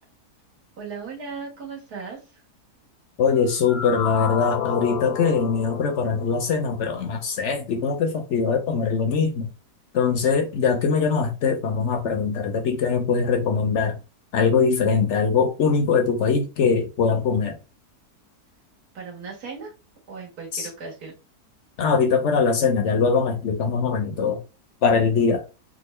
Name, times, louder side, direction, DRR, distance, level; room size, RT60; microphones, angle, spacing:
voice 1, 0.8-2.4 18.9-19.7 20.1-21.2, right 5 dB, 75° right, 1.8 m, -37 dB
voice 2, 3.2-9.5 9.9-14.0 14.3-17.6 20.5-20.7 21.8-24.4 24.8-25.4, left 5 dB, 65° left, 0.8 m, -22 dB
sound 1, 3.3-6.8, left 9 dB, 80° left, 1.1 m, -31 dB
3.7 x 2.4 x 3.1 m
omnidirectional pair, 1.7 m